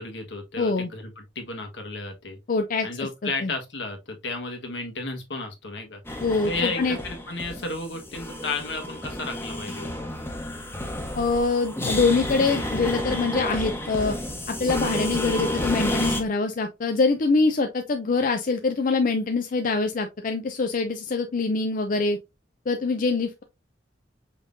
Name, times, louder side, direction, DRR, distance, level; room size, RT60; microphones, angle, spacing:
voice 1, 0.0-2.4 2.8-6.0 6.4-9.9, left 3 dB, 75° left, 1.4 m, -33 dB
voice 2, 0.6-0.9 2.5-2.9 3.2-3.5 6.2-7.0 11.1-14.1 14.5-22.2 22.7-23.4, left 3 dB, 50° left, 0.5 m, -24 dB
sound 1, 6.0-16.2, left 1 dB, 15° left, 1.0 m, -30 dB
5.4 x 3.6 x 2.6 m
head